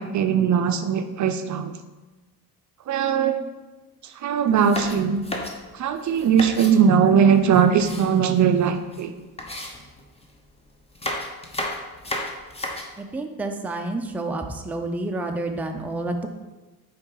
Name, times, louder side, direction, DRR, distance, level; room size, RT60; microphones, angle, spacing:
voice 1, 0.0-1.7 2.9-3.4 4.0-5.2 5.7-9.1, right 7 dB, 50° right, 7 dB, 0.5 m, -20 dB
sound 1, 4.5-6.8 7.3-8.6 8.9-9.0 9.4-10.4 10.8-13.0, left 1 dB, 15° left, 0.9 m, -33 dB
voice 2, 13.0-16.3, right 2 dB, 5° right, 4 dB, 0.5 m, -29 dB
5.1 x 4.7 x 4.6 m, 1.2 s
cardioid pair, 95°, 38 cm